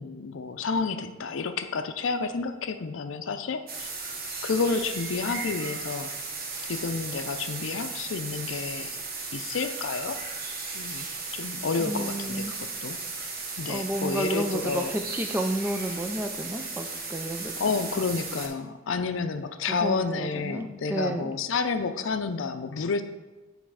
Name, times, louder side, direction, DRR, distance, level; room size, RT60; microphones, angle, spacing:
voice 1, 0.0-4.0 4.4-6.1 6.7-9.0 9.3-10.2 10.7-11.1 11.3-13.0 13.6-14.9 17.6-23.0, left 4 dB, 70° left, 9 dB, 0.5 m, -30 dB
sound 1, 3.7-18.5, right 4 dB, 50° right, 1.0 m, -36 dB
voice 2, 11.8-12.5 13.7-17.9 19.7-21.3, right 1 dB, 10° right, 5 dB, 0.3 m, -31 dB
8.5 x 3.3 x 4.8 m, 1.2 s
head